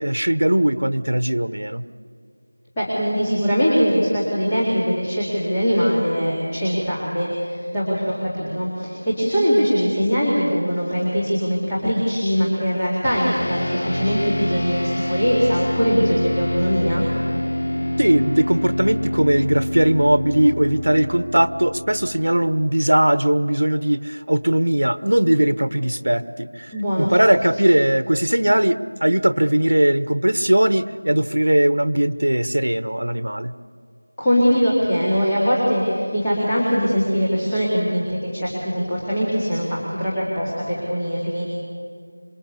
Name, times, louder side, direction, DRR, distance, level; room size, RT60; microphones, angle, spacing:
voice 1, 0.0-1.8 18.0-33.5, right 1 dB, 80° right, 13 dB, 1.1 m, -19 dB
voice 2, 2.8-17.1 26.7-27.1 34.2-41.5, equal, 5° left, -12 dB, 2.3 m, -21 dB
sound 1, 13.0-22.7, left 1 dB, 75° left, 2.7 m, -26 dB
27.0 x 22.5 x 8.4 m, 2.2 s
figure-of-eight pair, 180°, 0 cm